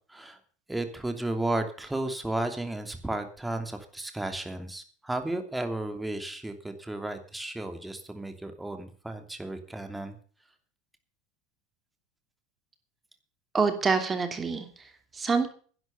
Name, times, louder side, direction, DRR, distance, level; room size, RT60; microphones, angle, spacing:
voice 1, 0.7-10.1, right 2 dB, 5° right, 6 dB, 2.9 m, -33 dB
voice 2, 13.5-15.5, right 5 dB, 20° right, 8 dB, 2.8 m, -27 dB
11.5 x 10.5 x 6.8 m, 0.42 s
supercardioid pair, 105°, 0 cm